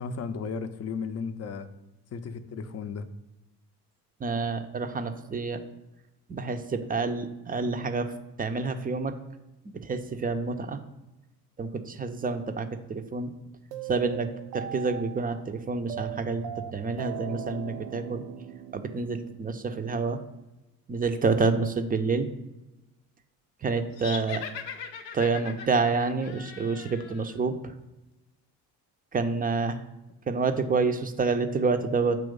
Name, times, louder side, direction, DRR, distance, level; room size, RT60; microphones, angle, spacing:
voice 1, 0.0-1.7 2.1-3.1, left 5 dB, 35° left, 10 dB, 0.6 m, -34 dB
voice 2, 4.2-5.6 6.3-8.1 8.4-9.2 9.7-10.8 11.6-13.3 13.9-18.2 18.7-20.2 20.9-22.3 23.6-24.4 25.1-27.6 29.1-29.8 30.3-32.2, right 4 dB, 20° right, 8 dB, 0.5 m, -28 dB
sound 1, 13.7-19.9, right 10 dB, 60° right, 0.6 m, -40 dB
sound 2, 23.9-27.4, left 7 dB, 85° left, 0.6 m, -40 dB
7.8 x 3.0 x 5.2 m, 0.98 s
hypercardioid pair, 55°, 47 cm